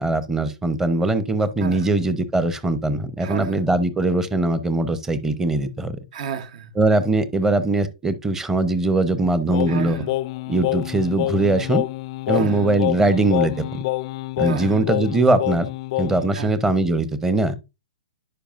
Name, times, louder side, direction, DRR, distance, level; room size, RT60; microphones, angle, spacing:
voice 1, 0.0-6.0 6.7-10.1 10.5-11.9 12.3-13.8 14.4-15.7 16.0-17.5, right 2 dB, 10° right, 0.8 m, -21 dB
voice 2, 3.2-3.6 6.1-6.7 9.7-10.1 12.3-12.7 14.4-14.8 16.3-16.5, right 7 dB, 55° right, 1.0 m, -32 dB
Singing, 9.5-16.3, left 19 dB, 45° left, 0.4 m, -27 dB
10.0 x 5.0 x 2.5 m
hypercardioid pair, 120°, 4 cm